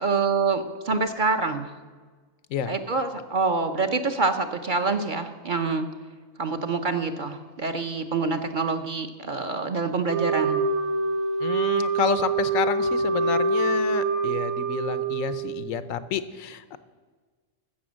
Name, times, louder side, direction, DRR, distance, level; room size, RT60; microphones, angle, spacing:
voice 1, 0.0-1.7 2.7-5.9 6.4-10.6, right 4 dB, 45° right, 6 dB, 0.7 m, -26 dB
Wind instrument woodwind instrument, 10.1-15.7, right 4 dB, 90° right, 1.6 m, -25 dB
voice 2, 11.4-16.8, left 8 dB, 90° left, 13 dB, 1.1 m, -29 dB
15.0 x 6.7 x 6.3 m, 1.4 s
omnidirectional pair, 1.4 m